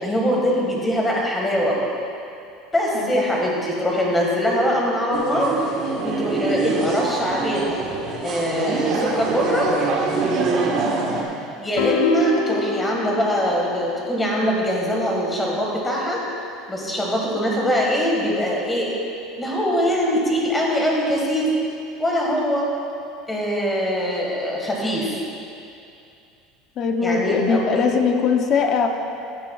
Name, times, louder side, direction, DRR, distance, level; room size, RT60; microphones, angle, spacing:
voice 1, 0.0-1.8 2.7-5.5 6.0-7.8 8.2-9.7 11.6-16.2 16.7-18.9 19.4-21.5 22.0-22.7 23.3-25.2 27.0-27.9, equal, 10° left, -2 dB, 1.7 m, -22 dB
voice 2, 2.9-3.3 10.8-11.2 26.8-28.9, left 5 dB, 35° left, 5 dB, 0.6 m, -21 dB
sound 1, 5.1-11.2, right 3 dB, 40° right, 1.3 m, -24 dB
sound 2, 11.8-14.2, left 5 dB, 70° left, 1.1 m, -26 dB
15.5 x 11.0 x 2.3 m, 2.5 s
cardioid pair, 170°, 0 cm